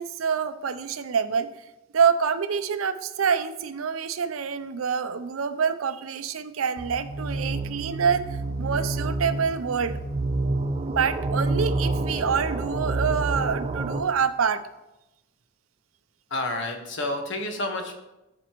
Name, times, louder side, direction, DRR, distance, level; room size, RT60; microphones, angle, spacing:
voice 1, 0.0-1.5 1.9-10.0 10.9-14.6, right 6 dB, 85° right, 11 dB, 0.5 m, -26 dB
sound 1, 6.8-14.0, right 2 dB, 30° right, 0.6 m, -28 dB
voice 2, 16.3-17.9, left 2 dB, 60° left, 3 dB, 1.3 m, -29 dB
13.5 x 5.2 x 3.0 m, 0.96 s
head